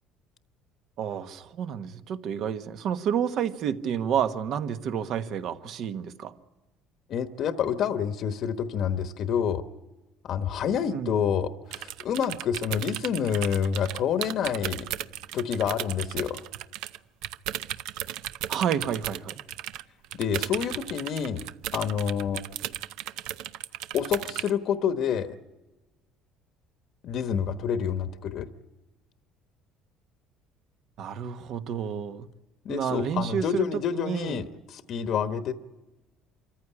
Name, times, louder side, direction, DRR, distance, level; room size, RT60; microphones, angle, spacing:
voice 1, 1.0-6.3 10.9-11.2 18.5-19.4 31.0-32.3 32.7-34.4, right 8 dB, 55° right, 11 dB, 1.3 m, -30 dB
voice 2, 7.1-9.6 10.2-14.9 15.3-16.4 20.1-21.5 21.7-22.4 23.9-25.4 27.0-28.5 32.6-35.5, left 8 dB, 50° left, 10 dB, 1.1 m, -28 dB
sound 1, 11.7-17.0 17.2-24.5, right 13 dB, 75° right, 0.7 m, -35 dB
26.0 x 14.5 x 10.0 m, 1.1 s
cardioid pair, 140°, 0 cm